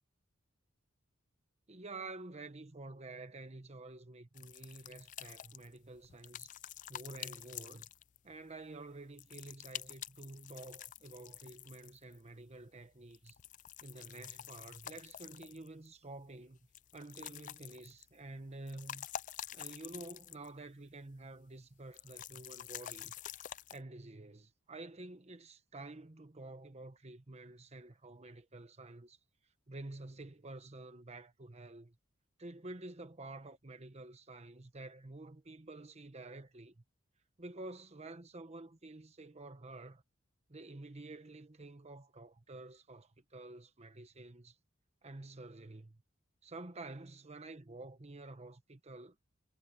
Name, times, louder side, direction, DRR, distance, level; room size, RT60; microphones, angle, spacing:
voice 1, 1.7-6.5 6.9-7.9 8.2-13.4 13.8-16.6 16.9-19.1 19.5-23.1 23.7-29.2 29.7-32.0 32.4-36.8 37.4-40.0 40.5-44.6 45.0-46.0 46.4-49.2, right 2 dB, 35° right, 1.2 m, -49 dB
sound 1, 4.3-8.3 9.2-12.2 13.1-15.9 16.7-18.2 18.5-20.6 20.9-21.0 21.9-23.8, left 11 dB, 40° left, 0.4 m, -48 dB
head